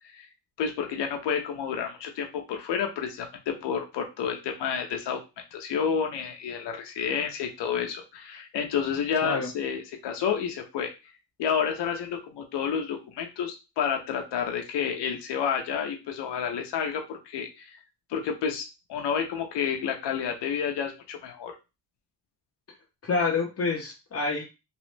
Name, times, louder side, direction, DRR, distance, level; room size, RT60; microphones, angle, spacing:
voice 1, 0.6-5.2 5.5-10.9 11.4-17.7 18.1-21.5, left 7 dB, 85° left, 3 dB, 0.7 m, -30 dB
voice 2, 23.0-24.4, left 4 dB, 35° left, -1 dB, 0.7 m, -27 dB
3.0 x 2.0 x 3.1 m, 0.27 s
cardioid pair, 80°, 41 cm